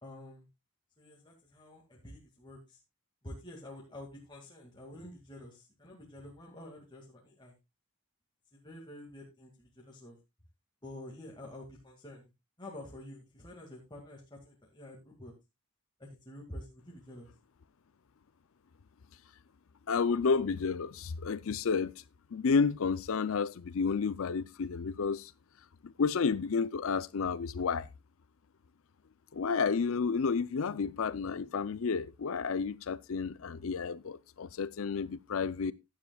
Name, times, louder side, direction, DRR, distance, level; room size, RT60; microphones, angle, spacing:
voice 1, 0.0-0.5 1.0-2.8 3.2-7.6 8.5-10.2 10.8-12.3 12.6-15.3 16.0-17.3, left 1 dB, 20° left, 2.1 m, -48 dB
voice 2, 19.9-22.0 22.3-25.3 25.8-27.9 29.3-35.7, left 5 dB, 65° left, 0.5 m, -31 dB
15.5 x 9.5 x 2.3 m
head